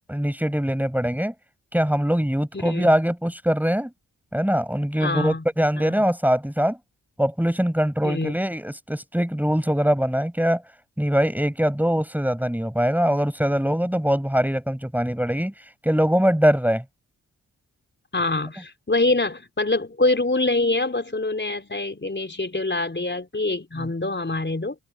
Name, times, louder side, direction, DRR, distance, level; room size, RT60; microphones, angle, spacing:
voice 1, 0.1-1.3 1.7-3.9 4.3-6.8 7.2-10.6 11.0-15.5 15.8-16.8 23.8-23.9, equal, 5° right, 6.7 m, -22 dB
voice 2, 2.5-2.9 5.0-5.4 5.8-6.0 8.0-8.3 18.1-24.8, left 2 dB, 30° left, 5.2 m, -25 dB
supercardioid pair, 45°, 36 cm